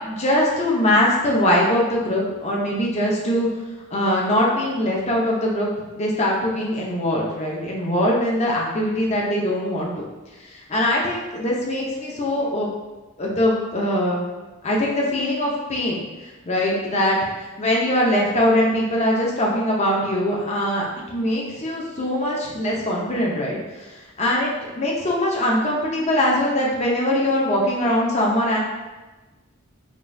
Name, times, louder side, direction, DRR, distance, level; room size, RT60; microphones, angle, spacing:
voice 1, 0.0-3.5 3.9-10.0 10.5-12.7 13.2-14.3 14.6-16.0 16.5-23.9 24.2-28.6, left 1 dB, 30° left, -3 dB, 0.7 m, -22 dB
5.2 x 2.4 x 2.6 m, 1.2 s
head